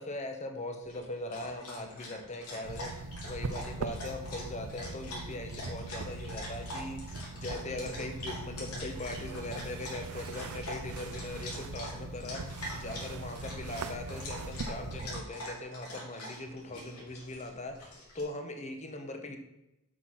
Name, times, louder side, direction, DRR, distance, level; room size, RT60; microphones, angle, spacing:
voice 1, 0.0-19.4, left 2 dB, 30° left, 5 dB, 1.1 m, -40 dB
Dog, 0.8-18.2, left 1 dB, 90° left, 3.4 m, -44 dB
sound 1, 2.6-15.2, right 2 dB, 80° right, 0.6 m, -41 dB
8.0 x 6.1 x 5.6 m, 0.90 s
head